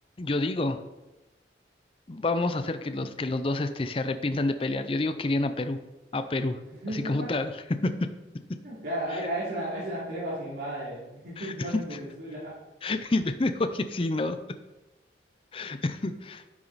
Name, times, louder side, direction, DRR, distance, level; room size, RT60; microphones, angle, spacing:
voice 1, 0.2-0.8 2.1-5.8 6.1-6.6 6.9-7.9 11.4-11.8 12.8-14.4 15.5-16.4, left 2 dB, 30° left, 9 dB, 0.5 m, -28 dB
voice 2, 6.7-7.3 8.6-12.6, right 1 dB, 65° right, -10 dB, 2.9 m, -34 dB
10.5 x 6.1 x 4.1 m, 1.0 s
head